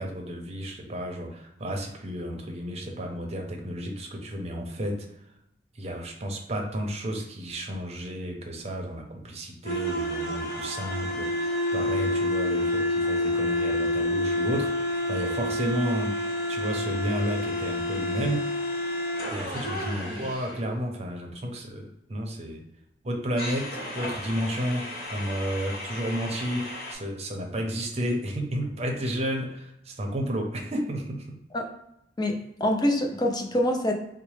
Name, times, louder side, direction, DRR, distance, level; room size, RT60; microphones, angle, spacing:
voice 1, 0.0-5.1 5.7-16.2 16.5-18.5 19.3-22.6 23.0-24.9 25.1-31.3, equal, 35° right, 2 dB, 0.7 m, -32 dB
sound 1, 9.6-20.5 23.4-26.9, left 1 dB, 55° left, 1.0 m, -29 dB
voice 2, 32.2-33.9, left 1 dB, 25° left, 3 dB, 0.5 m, -25 dB
4.0 x 2.1 x 3.2 m, 0.83 s
head